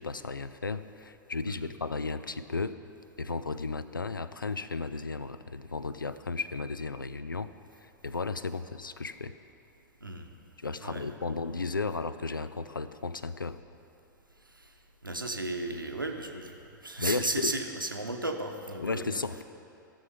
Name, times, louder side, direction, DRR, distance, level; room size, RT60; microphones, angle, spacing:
voice 1, 0.0-2.8 3.2-7.5 7.8-9.3 10.6-13.6 17.0-17.6 18.8-19.4, left 4 dB, 85° left, 13 dB, 0.4 m, -34 dB
voice 2, 10.0-10.3 10.8-11.3 15.0-16.6 16.8-19.2, right 2 dB, 90° right, 4 dB, 1.0 m, -35 dB
15.0 x 7.0 x 5.4 m, 2.7 s
figure-of-eight pair, 100°, 11 cm